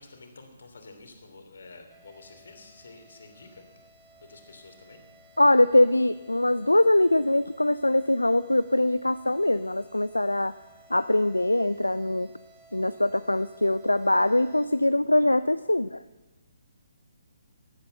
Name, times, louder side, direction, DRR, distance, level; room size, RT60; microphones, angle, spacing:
voice 1, 0.0-3.6 4.2-5.0, left 3 dB, 55° left, 5 dB, 3.0 m, -49 dB
sound 1, 1.9-14.7, right 1 dB, 10° right, 2.6 m, -57 dB
voice 2, 5.4-10.5 10.9-12.3 12.7-16.0, left 1 dB, 80° left, 14 dB, 0.4 m, -22 dB
17.5 x 8.9 x 7.8 m, 1.1 s
figure-of-eight pair, 135°, 0 cm